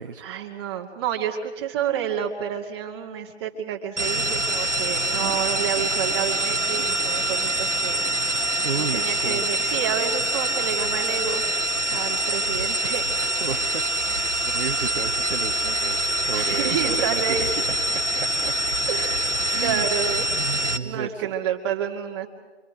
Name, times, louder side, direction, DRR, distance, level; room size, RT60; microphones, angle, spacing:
voice 1, 0.2-8.1 8.9-11.4 11.9-13.0 13.4-13.6 16.3-17.5 18.9-22.3, right 8 dB, 20° right, 1 dB, 2.2 m, -29 dB
sound 1, 4.0-20.8, right 1 dB, 85° right, 1.5 m, -25 dB
voice 2, 8.6-9.4 11.9-12.1 13.1-18.6 19.5-19.9 20.5-21.3, right 5 dB, 50° right, 4 dB, 1.2 m, -33 dB
sound 2, 8.7-20.7, right 9 dB, ahead, 0.8 m, -50 dB
26.5 x 24.5 x 5.1 m, 1.4 s
figure-of-eight pair, 150°, 35 cm